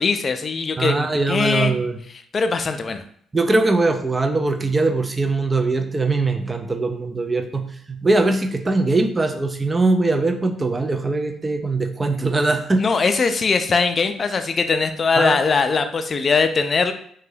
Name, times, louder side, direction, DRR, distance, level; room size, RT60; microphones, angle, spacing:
voice 1, 0.0-1.7 2.3-3.0 12.8-16.9, left 4 dB, 45° left, 8 dB, 0.3 m, -21 dB
voice 2, 0.8-2.0 3.3-12.8 15.2-15.4, right 3 dB, 25° right, 7 dB, 0.4 m, -21 dB
2.6 x 2.2 x 3.3 m, 0.62 s
supercardioid pair, 70°, 0 cm